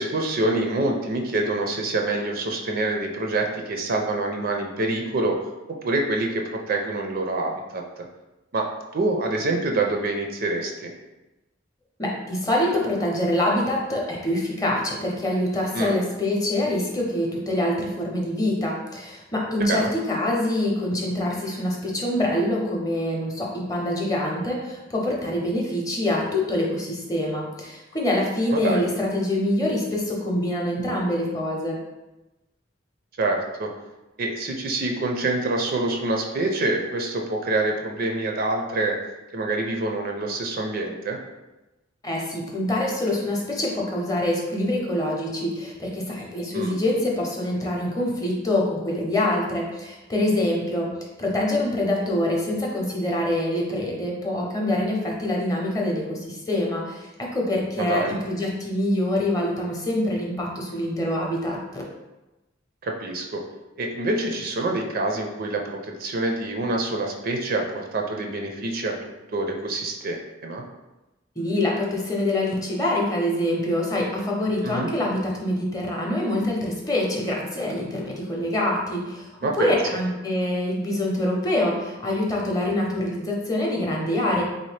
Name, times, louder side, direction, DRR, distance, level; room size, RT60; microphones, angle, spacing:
voice 1, 0.0-5.4 5.8-8.0 8.5-8.7 8.9-10.9 15.7-15.9 19.6-19.9 28.5-28.8 33.2-33.7 34.2-39.0 39.3-41.2 46.5-46.8 57.8-58.1 62.8-63.4 63.8-68.9 69.3-70.2 70.4-70.6 74.6-74.9 79.4-79.8, right 2 dB, 50° right, 2 dB, 0.4 m, -26 dB
voice 2, 12.0-31.8 42.0-50.9 51.2-61.9 71.4-79.3 79.6-84.4, left 1 dB, 20° left, -2 dB, 0.6 m, -25 dB
3.5 x 2.7 x 3.2 m, 1.0 s
head